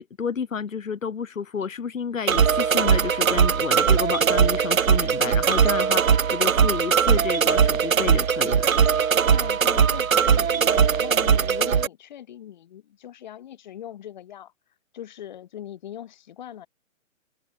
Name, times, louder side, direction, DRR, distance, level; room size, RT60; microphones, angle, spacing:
voice 1, 0.0-8.7, left 6 dB, 75° left, 5.2 m, -30 dB
sound 1, 2.3-11.9, right 7 dB, 90° right, 2.0 m, -20 dB
voice 2, 9.3-14.5 14.9-16.7, left 11 dB, 35° left, 6.4 m, -40 dB
hypercardioid pair, 175°, 40 cm